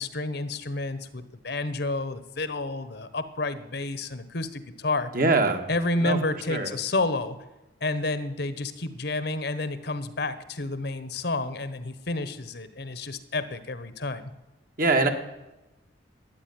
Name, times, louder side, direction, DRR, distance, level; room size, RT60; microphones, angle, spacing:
voice 1, 0.0-5.1 5.7-7.4 7.8-14.2, left 2 dB, 60° left, 13 dB, 1.1 m, -30 dB
voice 2, 5.1-5.7 6.0-6.2 6.5-6.7 14.8-15.1, right 3 dB, 50° right, 5 dB, 1.7 m, -22 dB
13.0 x 9.9 x 9.6 m, 1.0 s
head